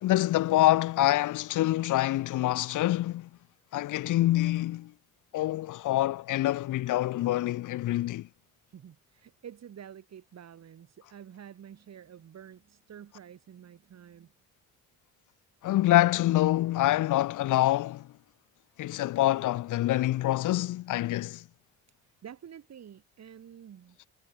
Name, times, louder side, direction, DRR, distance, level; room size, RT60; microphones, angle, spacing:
voice 1, 0.0-3.3 3.7-4.9 5.3-8.3 15.6-18.1 18.8-21.4, left 15 dB, 80° left, 1.5 m, -26 dB
voice 2, 8.7-14.3 20.3-20.4 22.2-24.0, right 9 dB, 60° right, 7.5 m, -49 dB
cardioid pair, 90°, 30 cm